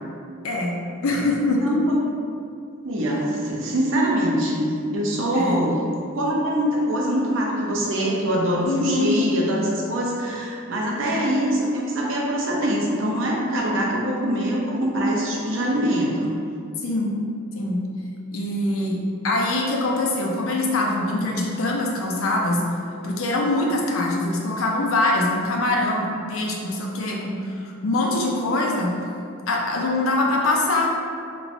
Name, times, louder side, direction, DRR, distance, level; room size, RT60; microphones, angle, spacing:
voice 1, 0.4-0.8 1.0-1.8 5.3-5.7 8.6-9.0 16.8-17.1 17.6-17.8 18.3-22.6 23.0-28.9 29.5-30.9, left 2 dB, 80° left, -1 dB, 0.5 m, -23 dB
voice 2, 1.6-1.9 2.8-5.9 6.1-16.3, equal, 70° right, -3 dB, 0.6 m, -23 dB
3.1 x 2.9 x 2.6 m, 2.4 s
head